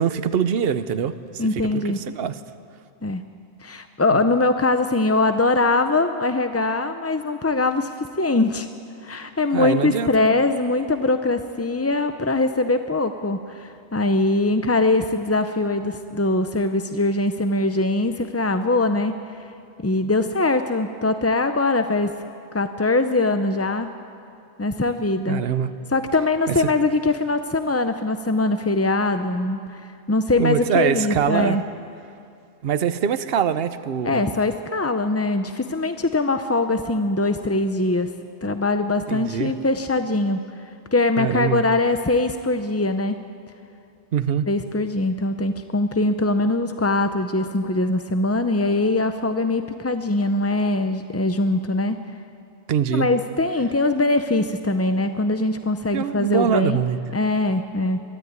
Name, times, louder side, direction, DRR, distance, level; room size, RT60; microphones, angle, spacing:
voice 1, 0.0-2.4 4.1-4.2 9.5-10.3 25.3-25.7 26.5-26.6 30.4-31.6 32.6-34.2 39.1-39.5 41.2-41.6 44.1-44.5 52.7-53.1 55.9-57.0, right 8 dB, 60° right, 12 dB, 1.0 m, -23 dB
voice 2, 1.4-2.0 3.0-3.2 3.6-8.7 9.0-19.5 19.8-22.1 22.5-23.9 24.6-25.4 25.9-31.6 34.0-38.1 38.4-40.4 40.9-43.2 44.5-52.0 52.9-56.8 57.1-58.0, left 2 dB, 20° left, 8 dB, 0.4 m, -22 dB
22.0 x 13.5 x 9.6 m, 2.5 s
omnidirectional pair, 1.2 m